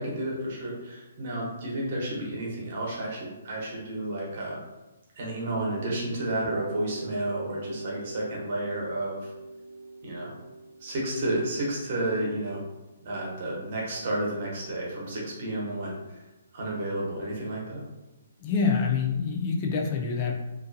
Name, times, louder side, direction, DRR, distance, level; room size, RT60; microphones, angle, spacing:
voice 1, 0.0-4.6 5.2-9.3 10.0-10.3 10.8-12.6 13.0-16.2 16.5-17.8, right 1 dB, 45° right, -3 dB, 0.9 m, -31 dB
sound 1, 6.4-14.2, right 3 dB, 75° left, 1.0 m, -42 dB
voice 2, 18.4-20.3, left 5 dB, 30° left, 1 dB, 0.4 m, -26 dB
2.6 x 2.2 x 2.5 m, 1.0 s
hypercardioid pair, 160°, 0 cm